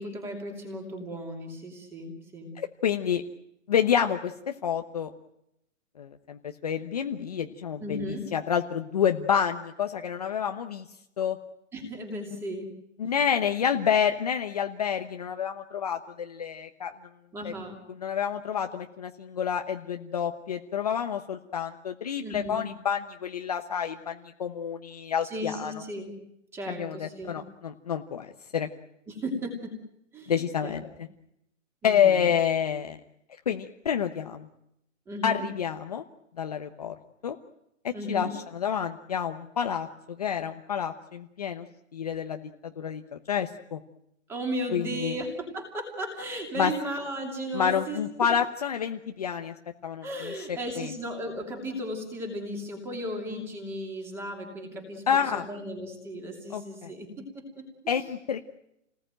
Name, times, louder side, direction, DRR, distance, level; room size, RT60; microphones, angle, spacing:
voice 1, 0.0-2.5 7.8-8.2 11.7-12.7 13.0-13.1 17.3-17.8 22.2-22.6 25.2-26.2 26.5-27.4 29.1-29.8 30.1-30.8 31.8-32.2 35.1-35.4 37.9-38.3 44.3-48.3 50.0-57.9, equal, 5° right, 3 dB, 2.7 m, -35 dB
voice 2, 2.6-3.2 3.7-5.1 6.0-10.9 11.2-11.4 13.0-16.9 17.4-17.5 18.0-25.7 26.7-28.7 30.3-30.8 31.8-33.0 33.5-34.5 35.2-36.0 36.4-36.9 37.2-37.4 38.1-41.7 41.9-42.5 42.8-43.8 44.7-45.2 46.6-46.7 47.5-49.5 49.8-50.5 50.8-50.9 55.1-55.5 56.5-56.9 57.9-58.4, left 8 dB, 30° left, 5 dB, 1.0 m, -28 dB
29.5 x 19.5 x 9.0 m, 0.81 s
hypercardioid pair, 180°, 38 cm